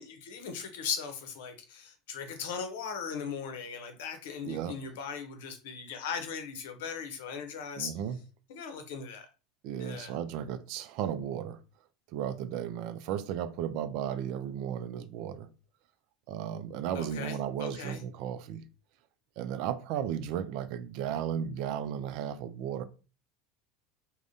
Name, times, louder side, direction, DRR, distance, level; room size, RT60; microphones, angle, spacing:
voice 1, 0.0-7.9 8.5-9.3 9.8-10.1 16.9-18.0, left 6 dB, 75° left, 0.7 m, -38 dB
voice 2, 4.4-4.8 7.8-8.2 9.6-11.6 12.1-15.5 16.3-18.6 19.4-22.8, right 9 dB, 65° right, 0.4 m, -35 dB
3.4 x 2.1 x 2.6 m
hypercardioid pair, 95°, 0 cm